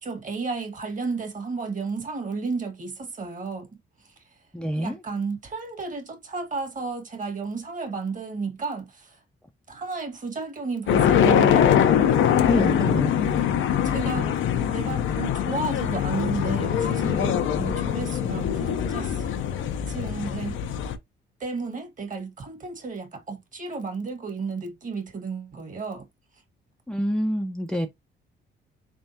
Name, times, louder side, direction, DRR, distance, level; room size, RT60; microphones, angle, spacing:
voice 1, 0.0-3.7 4.0-4.1 4.8-9.2 9.7-11.8 12.5-13.0 13.8-14.4 14.7-19.2 19.9-20.6 21.4-26.1, right 4 dB, 40° right, 1.5 m, -32 dB
voice 2, 4.5-5.0 12.4-13.1 26.9-27.9, equal, 5° left, 0.5 m, -26 dB
sound 1, 10.9-21.0, left 9 dB, 75° left, 0.6 m, -23 dB
3.6 x 3.5 x 2.7 m
cardioid pair, 90°, 20 cm